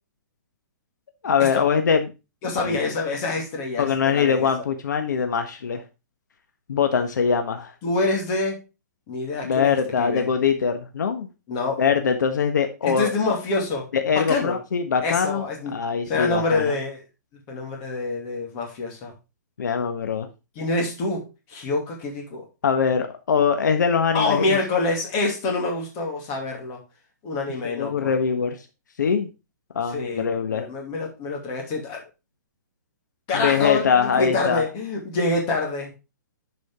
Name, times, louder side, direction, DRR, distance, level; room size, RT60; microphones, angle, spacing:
voice 1, 1.2-2.1 2.6-2.8 3.8-5.8 6.7-7.7 9.4-11.3 11.8-13.1 13.9-16.7 19.6-20.3 22.6-24.6 27.6-28.6 29.0-29.3 29.7-30.6 33.3-34.6, left 6 dB, 75° left, 6 dB, 1.4 m, -22 dB
voice 2, 2.4-4.4 7.8-8.6 9.1-10.2 11.5-11.8 12.8-13.8 14.1-14.5 15.0-15.7 16.1-17.0 17.5-19.1 20.6-22.4 24.1-26.8 27.2-28.1 29.9-32.0 33.3-35.9, left 3 dB, 25° left, 0 dB, 2.5 m, -26 dB
10.5 x 5.1 x 3.6 m, 0.28 s
hypercardioid pair, 165°, 10 cm